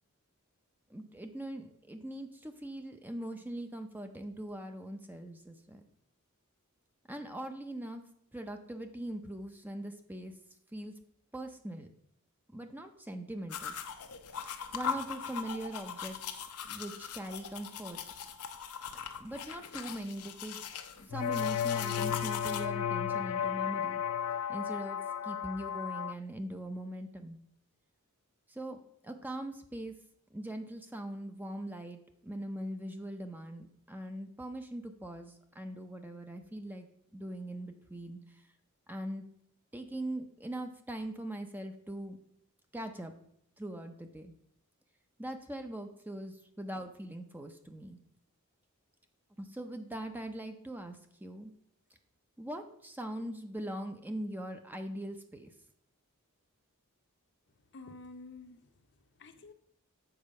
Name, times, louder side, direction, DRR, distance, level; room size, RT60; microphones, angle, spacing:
voice 1, 0.9-5.8 7.1-8.0 8.3-10.3 10.7-10.9 11.3-11.9 12.5-13.7 14.7-18.0 19.2-20.7 21.1-24.0 24.5-27.4 28.5-28.8 29.0-29.9 30.3-36.9 37.1-38.5 38.9-39.2 39.7-42.2 42.7-43.1 43.6-44.3 45.2-48.0 49.4-51.5 52.4-55.5, right 1 dB, 10° right, 6 dB, 0.5 m, -41 dB
sound 1, 13.5-22.7, left 7 dB, 90° left, 0.8 m, -40 dB
sound 2, 21.1-26.1, left 9 dB, 75° left, 0.3 m, -33 dB
voice 2, 57.7-59.5, left 3 dB, 50° left, 7 dB, 0.7 m, -51 dB
7.0 x 4.6 x 6.4 m, 0.70 s
head